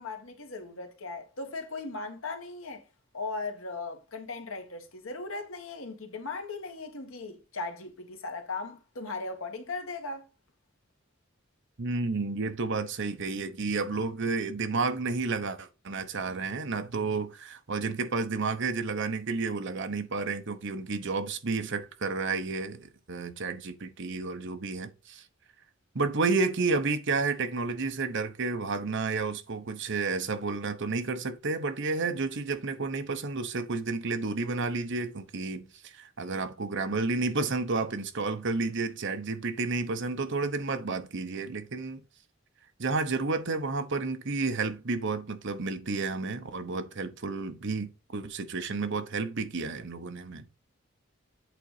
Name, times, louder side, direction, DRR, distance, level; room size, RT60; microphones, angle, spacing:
voice 1, 0.0-2.8 3.1-10.3, left 3 dB, 85° left, 1.6 m, -38 dB
voice 2, 11.8-25.2 25.9-42.0 42.8-50.4, right 3 dB, 60° right, 1.0 m, -31 dB
8.2 x 3.9 x 4.8 m
head